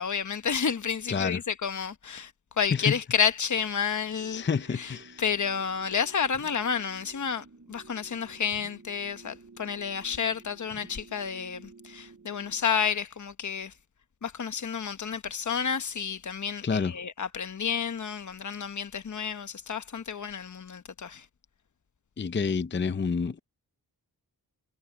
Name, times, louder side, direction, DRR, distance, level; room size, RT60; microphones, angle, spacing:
voice 1, 0.0-2.3 2.6-4.4 4.7-13.7 14.2-21.2, left 7 dB, 45° left, 1.1 m, -30 dB
voice 2, 1.1-1.4 2.7-2.9 4.2-5.2 16.6-17.0 22.2-23.4, left 5 dB, 30° left, 0.6 m, -28 dB
sound 1, 4.2-12.9, right 4 dB, 40° right, 5.8 m, -52 dB
wide cardioid pair, 145°, 39 cm